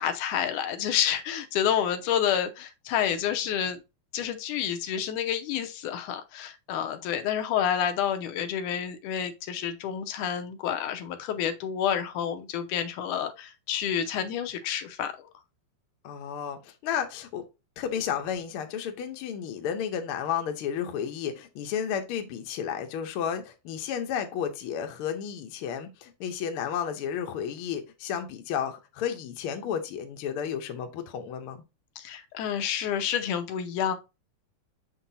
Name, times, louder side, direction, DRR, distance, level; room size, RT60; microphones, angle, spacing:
voice 1, 0.0-3.8 4.1-15.3 32.0-34.0, left 9 dB, 85° left, 2.2 m, -29 dB
voice 2, 16.0-17.4 17.8-31.6, left 8 dB, 65° left, 1.4 m, -32 dB
6.6 x 5.9 x 2.8 m
omnidirectional pair, 3.5 m